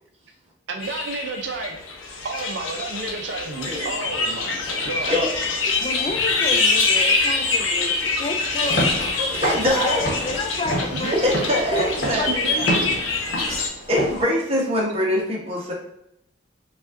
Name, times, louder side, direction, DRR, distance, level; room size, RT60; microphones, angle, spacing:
voice 1, 0.7-1.8 2.2-5.1 10.9-11.7 12.1-13.0, right 3 dB, 65° right, 3 dB, 0.5 m, -31 dB
sound 1, 0.8-13.7, left 3 dB, 80° left, 0.6 m, -25 dB
voice 2, 5.1-5.6 9.2-10.0 11.0-12.3 13.9-15.7, left 1 dB, 30° right, -3 dB, 0.9 m, -23 dB
voice 3, 5.8-8.8 9.5-11.4 11.7-13.0, left 2 dB, 30° left, 4 dB, 0.3 m, -31 dB
Walk footsteps / Siren, 8.6-14.2, equal, 50° left, 1.0 m, -29 dB
5.0 x 2.4 x 2.5 m, 0.77 s
head